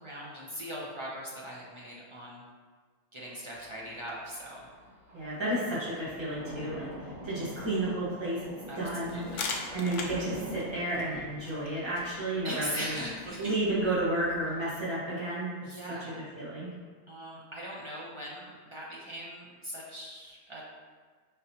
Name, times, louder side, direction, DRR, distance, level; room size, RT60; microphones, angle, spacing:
voice 1, 0.0-2.4 3.1-4.7 8.7-9.6 12.4-13.6 15.6-16.2 17.1-20.6, equal, 50° right, -6 dB, 0.3 m, -40 dB
Thunder, 3.5-14.8, equal, 75° right, 1.5 m, -46 dB
voice 2, 5.1-8.5 8.8-9.2 9.7-13.0 13.4-15.5 15.9-16.7, right 1 dB, 20° right, -9 dB, 1.4 m, -32 dB
sound 1, 9.1-14.6, left 4 dB, 85° left, 1.1 m, -42 dB
5.0 x 3.8 x 2.8 m, 1.5 s
omnidirectional pair, 1.6 m